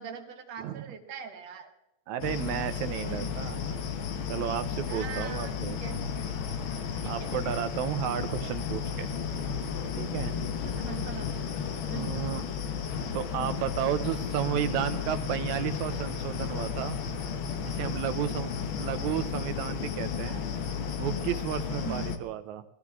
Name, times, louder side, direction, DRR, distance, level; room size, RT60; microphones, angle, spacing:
voice 1, 0.0-1.7 3.0-3.5 4.9-6.0 7.0-7.5 10.6-11.3 11.9-12.3 21.8-22.1, right 8 dB, 65° right, 4 dB, 2.4 m, -41 dB
voice 2, 0.6-1.0 2.1-3.8 4.3-6.0 7.0-9.1 10.0-10.3 11.9-12.4 13.1-17.0 17.6-18.5 18.8-20.4 21.0-22.7, right 11 dB, 80° right, 11 dB, 2.0 m, -33 dB
sound 1, 2.2-22.2, left 6 dB, 60° left, 1.3 m, -33 dB
20.0 x 15.0 x 3.6 m, 0.84 s
omnidirectional pair, 3.5 m